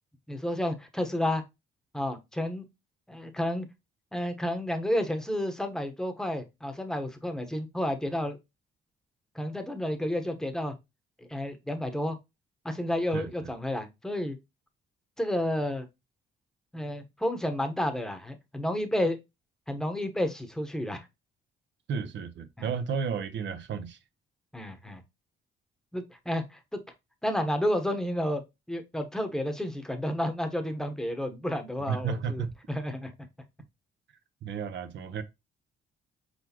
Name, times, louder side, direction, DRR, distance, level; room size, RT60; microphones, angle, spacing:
voice 1, 0.3-1.4 1.9-2.7 3.1-3.7 4.1-8.4 9.3-10.7 11.2-12.2 12.6-14.4 15.2-15.9 16.7-19.2 19.7-21.1 22.6-22.7 24.5-25.0 25.9-26.8 27.2-28.4 28.7-33.1, left 1 dB, 5° left, 1.0 m, -31 dB
voice 2, 13.1-13.5 21.9-24.0 31.9-32.5 34.4-35.2, right 6 dB, 65° right, 0.8 m, -33 dB
4.6 x 4.1 x 2.8 m
cardioid pair, 90°, 20 cm